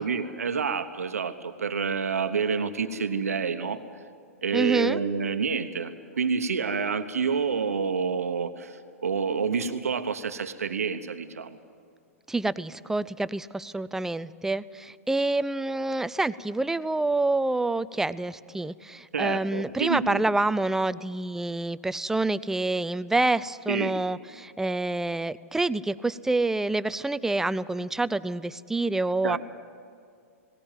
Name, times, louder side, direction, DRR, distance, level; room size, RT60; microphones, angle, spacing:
voice 1, 0.0-3.8 4.4-11.6 19.1-20.3 23.7-23.9 29.2-29.4, right 5 dB, 90° right, 9 dB, 1.1 m, -28 dB
voice 2, 4.5-5.0 12.3-29.4, right 2 dB, 5° right, 15 dB, 0.4 m, -27 dB
19.0 x 18.0 x 9.1 m, 2.3 s
hypercardioid pair, 115°, 8 cm